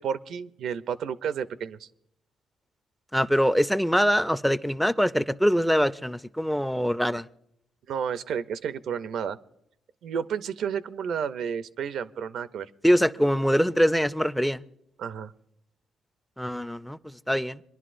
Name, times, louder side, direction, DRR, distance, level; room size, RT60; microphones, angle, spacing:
voice 1, 0.0-1.9 7.1-7.2 7.9-9.4 10.0-12.7 15.0-15.3, right 7 dB, 70° right, 0.5 m, -31 dB
voice 2, 3.1-7.3 12.8-14.6 16.4-17.6, equal, ahead, 0.4 m, -23 dB
26.0 x 10.5 x 2.5 m
cardioid pair, 90°, 0 cm